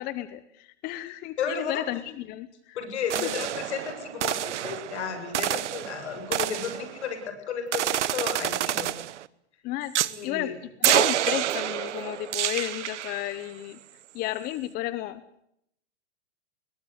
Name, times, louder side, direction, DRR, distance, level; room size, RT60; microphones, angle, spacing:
voice 1, 0.0-2.5 3.2-3.3 9.6-9.9 10.2-10.5 10.8-13.8 14.1-15.2, left 15 dB, 25° left, 15 dB, 0.9 m, -32 dB
voice 2, 1.4-1.8 2.8-7.2 7.5-8.9 10.1-10.5, left 6 dB, 70° left, 8 dB, 7.6 m, -33 dB
sound 1, 3.1-7.3 7.7-9.3 9.9-10.2 10.8-13.4, right 12 dB, 80° right, 1.1 m, -28 dB
21.5 x 19.5 x 8.2 m, 0.73 s
hypercardioid pair, 150°, 35 cm